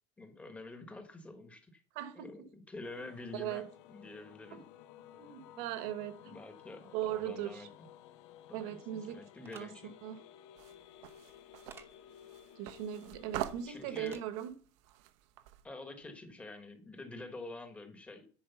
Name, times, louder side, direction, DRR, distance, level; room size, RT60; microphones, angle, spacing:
voice 1, 0.2-1.8 2.2-4.6 6.2-7.7 8.5-8.8 9.1-9.9 13.7-14.2 15.6-18.3, left 2 dB, 10° left, 1.1 m, -47 dB
voice 2, 1.9-2.3 3.3-3.7 4.5-4.6 5.1-6.4 6.9-7.7 8.5-9.2 9.5-9.7 10.0-10.2 12.6-14.5, right 11 dB, 60° right, 1.3 m, -39 dB
sound 1, 2.8-14.4, left 11 dB, 75° left, 0.8 m, -56 dB
sound 2, 9.4-9.6 11.7-11.9 14.0-14.3, right 5 dB, 15° right, 0.9 m, -51 dB
sound 3, 10.6-15.7, right 14 dB, 75° right, 0.9 m, -44 dB
10.5 x 4.9 x 7.0 m
cardioid pair, 175°, 15 cm